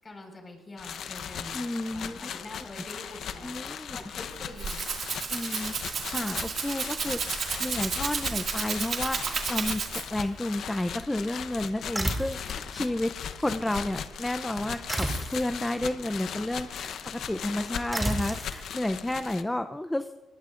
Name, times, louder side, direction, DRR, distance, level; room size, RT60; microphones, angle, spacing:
voice 1, 0.0-5.3, left 2 dB, 30° left, 3 dB, 5.0 m, -46 dB
sound 1, 0.8-19.4, left 8 dB, 70° left, 0.9 m, -38 dB
voice 2, 1.5-2.2 3.4-4.0 5.3-5.8 6.1-7.2 7.6-20.2, left 1 dB, 10° left, 10 dB, 0.5 m, -31 dB
Rattle (instrument), 4.3-10.3, right 6 dB, 55° right, 2.1 m, -32 dB
sound 2, 11.9-12.6 14.9-15.5 17.9-18.6, right 1 dB, 15° right, 2.6 m, -31 dB
22.0 x 20.5 x 2.5 m, 1.2 s
cardioid pair, 90°, 0 cm